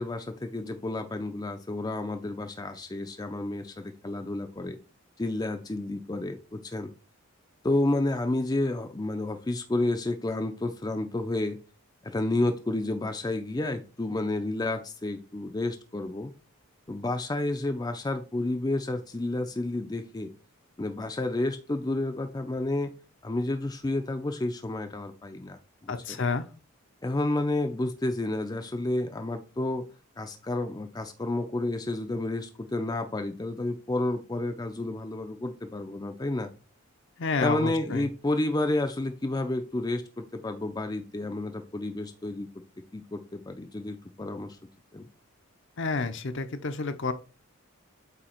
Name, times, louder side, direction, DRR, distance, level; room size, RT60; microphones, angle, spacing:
voice 1, 0.0-4.8 5.2-6.9 7.6-11.6 12.0-16.3 16.9-20.3 20.8-22.9 23.2-25.9 27.0-29.9 30.2-36.5 37.4-42.5 42.9-44.6 44.9-45.1, left 2 dB, 20° left, 6 dB, 0.5 m, -30 dB
voice 2, 25.9-26.5 37.2-38.1 45.8-47.1, left 4 dB, 60° left, 8 dB, 0.7 m, -29 dB
8.2 x 2.9 x 4.4 m, 0.34 s
head